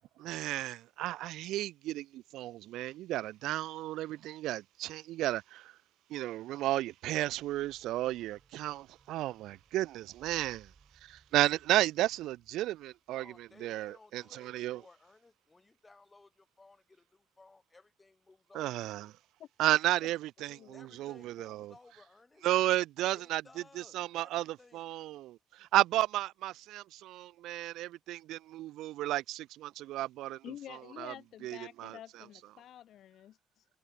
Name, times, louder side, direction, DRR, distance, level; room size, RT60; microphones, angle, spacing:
voice 1, 0.2-5.7 6.1-10.7 11.0-13.3 13.6-14.8 18.5-19.1 19.6-21.7 22.4-23.4 23.8-30.4 31.0-31.1 31.4-32.0, right 15 dB, 85° right, 0.3 m, -33 dB
sound 1, 7.3-14.0, right 4 dB, 30° right, 3.3 m, -66 dB
voice 2, 12.6-18.9 20.7-22.5 23.1-24.8, left 3 dB, 20° left, 4.2 m, -60 dB
voice 3, 19.4-19.8 20.4-20.7 30.4-33.6, left 11 dB, 70° left, 0.4 m, -49 dB
cardioid pair, 115°, 0 cm